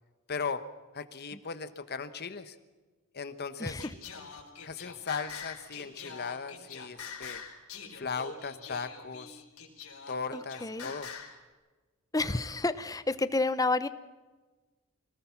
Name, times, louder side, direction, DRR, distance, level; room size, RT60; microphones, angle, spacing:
voice 1, 0.3-0.7 0.9-2.6 3.1-3.8 4.6-7.4 7.9-9.4 10.1-11.1, left 5 dB, 45° left, 11 dB, 1.1 m, -37 dB
Singing, 3.8-11.4, left 6 dB, 75° left, 4.4 m, -44 dB
voice 2, 10.3-10.9 12.1-13.9, left 2 dB, 15° left, 13 dB, 0.8 m, -30 dB
25.0 x 18.5 x 5.9 m, 1.3 s
head